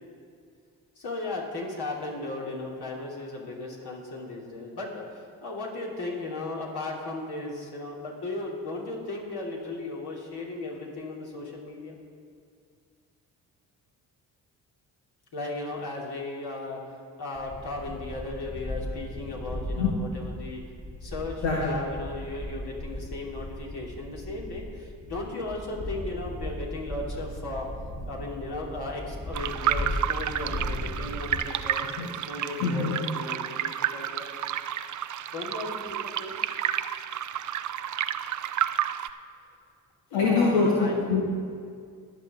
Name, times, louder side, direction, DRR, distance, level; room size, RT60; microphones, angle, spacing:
voice 1, 0.9-12.0 15.3-20.6 21.0-27.7 28.0-34.3 35.3-36.4 40.1-40.9, left 2 dB, 55° left, -3 dB, 3.1 m, -36 dB
sound 1, 17.4-31.5, equal, 30° left, 2.5 m, -37 dB
voice 2, 21.4-21.7 32.0-32.1 32.6-32.9 40.1-41.2, left 4 dB, 75° left, -4 dB, 1.5 m, -24 dB
sound 2, 29.3-39.1, right 10 dB, 40° right, 0.5 m, -31 dB
21.5 x 7.3 x 3.7 m, 2.2 s
hypercardioid pair, 40°, 45 cm